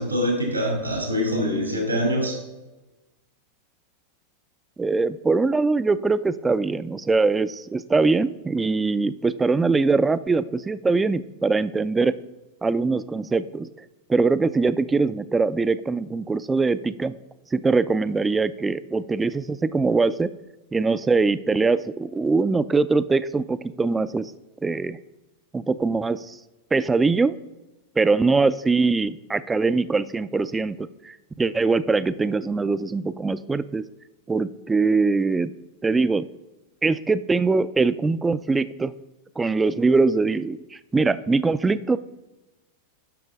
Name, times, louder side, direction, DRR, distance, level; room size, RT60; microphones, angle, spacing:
voice 1, 0.0-2.4, equal, 85° right, 0 dB, 2.3 m, -24 dB
voice 2, 4.8-12.1 12.6-13.7 14.1-17.1 17.5-20.3 20.7-24.3 24.6-25.0 25.5-26.4 26.7-27.4 28.0-33.8 34.3-35.5 35.8-36.3 36.8-38.9 39.4-42.0, right 3 dB, 10° right, 16 dB, 0.3 m, -22 dB
11.5 x 6.1 x 3.5 m, 1.1 s
figure-of-eight pair, 90°, 0 cm